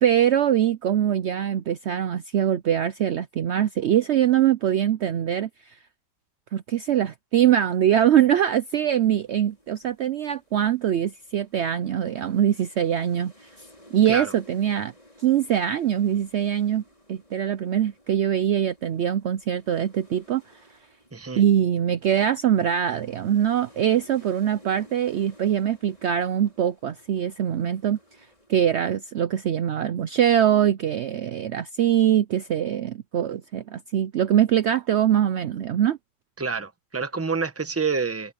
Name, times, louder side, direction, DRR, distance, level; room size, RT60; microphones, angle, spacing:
voice 1, 0.0-5.8 6.5-13.7 13.9-14.9 15.2-16.8 17.1-20.6 21.4-36.0, right 10 dB, 75° right, 0.6 m, -23 dB
sound 1, 9.2-28.5, left 1 dB, 20° left, 5.5 m, -55 dB
voice 2, 21.1-21.4 36.4-38.3, right 5 dB, 10° right, 0.8 m, -28 dB
omnidirectional pair, 1.8 m